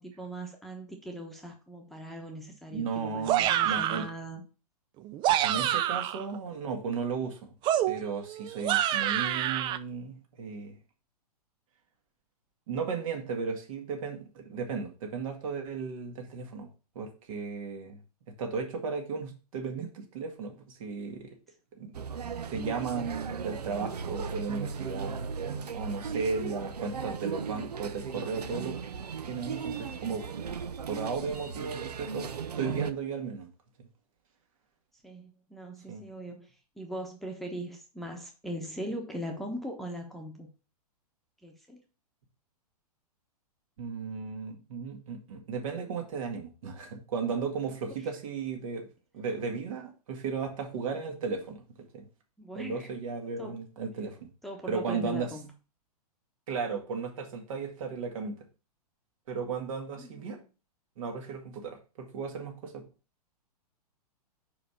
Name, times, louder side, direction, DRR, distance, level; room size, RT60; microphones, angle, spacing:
voice 1, 0.0-4.4 35.0-40.5 41.4-41.8 52.4-52.9 53.4-53.6 54.4-55.5 60.0-60.4, equal, ahead, 2 dB, 1.1 m, -40 dB
voice 2, 2.7-4.1 5.4-7.5 7.9-10.8 12.7-16.7 17.0-18.0 18.4-21.4 21.8-21.9 22.5-25.2 25.7-28.8 29.2-30.2 30.9-32.3 32.6-33.5 35.9-36.1 43.8-48.9 49.1-51.6 51.9-52.1 52.5-54.2 54.7-55.3 56.5-58.4 59.3-60.4 61.0-62.9, right 5 dB, 55° right, 4 dB, 2.1 m, -35 dB
sound 1, 3.3-4.1 5.0-6.2 7.6-9.8, right 12 dB, 25° right, 0.4 m, -27 dB
sound 2, 21.9-32.9, right 6 dB, 80° right, 0.7 m, -37 dB
5.1 x 4.9 x 5.7 m, 0.34 s
figure-of-eight pair, 115°, 20 cm